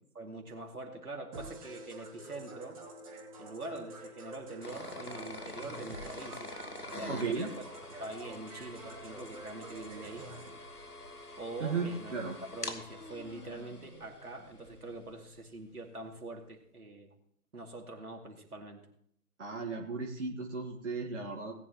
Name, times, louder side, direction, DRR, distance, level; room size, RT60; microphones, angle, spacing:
voice 1, 0.1-2.8 3.4-6.6 6.8-7.5 8.0-10.2 11.4-12.1 12.5-17.1 17.5-18.8, right 2 dB, 75° right, 2 dB, 2.5 m, -44 dB
sound 1, 1.3-10.5, right 2 dB, 25° right, 2.2 m, -48 dB
sound 2, 4.6-15.4, left 2 dB, 90° left, 1.7 m, -46 dB
voice 2, 7.1-7.5 11.6-12.4 19.4-21.5, right 4 dB, 50° right, -1 dB, 1.7 m, -35 dB
18.5 x 9.6 x 3.0 m, 0.69 s
figure-of-eight pair, 145°, 45 cm